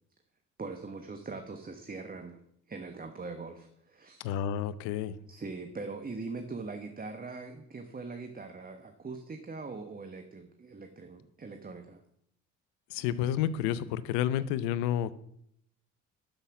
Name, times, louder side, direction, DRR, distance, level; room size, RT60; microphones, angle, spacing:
voice 1, 0.6-2.4 2.7-4.2 5.3-12.0, right 3 dB, 25° right, 6 dB, 1.2 m, -41 dB
voice 2, 4.2-5.2 12.9-15.1, left 10 dB, 90° left, 16 dB, 0.6 m, -30 dB
12.0 x 5.8 x 6.0 m, 0.73 s
supercardioid pair, 65°, 33 cm